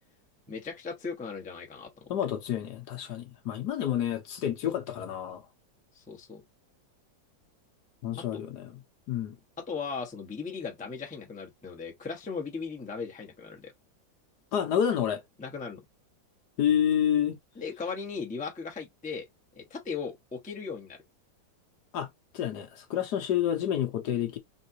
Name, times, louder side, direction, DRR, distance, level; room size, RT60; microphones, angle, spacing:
voice 1, 0.5-2.1 5.9-6.4 8.1-8.4 9.6-13.7 15.4-15.8 17.6-19.3 19.5-21.0, left 5 dB, 5° left, 0.7 m, -37 dB
voice 2, 2.1-5.4 8.0-8.7 9.1-9.4 14.5-15.2 16.6-17.4 21.9-22.1 22.3-24.4, left 9 dB, 65° left, 1.3 m, -29 dB
4.1 x 3.7 x 2.8 m
omnidirectional pair, 2.1 m